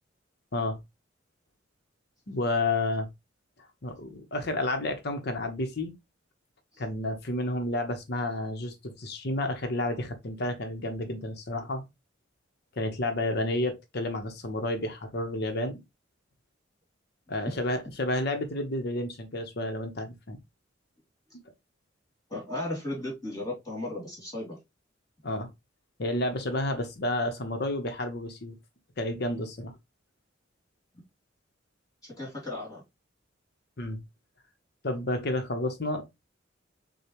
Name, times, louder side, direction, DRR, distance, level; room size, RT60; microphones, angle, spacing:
voice 1, 2.3-3.1 3.8-5.9 6.8-11.8 12.7-15.8 17.3-20.4 25.2-25.5 26.0-28.6 29.0-29.8 33.8-34.0 34.8-36.0, left 1 dB, 55° left, 1.0 m, -30 dB
voice 2, 22.3-24.6 32.2-32.8, left 1 dB, 20° left, 2.6 m, -35 dB
6.7 x 2.3 x 2.9 m
head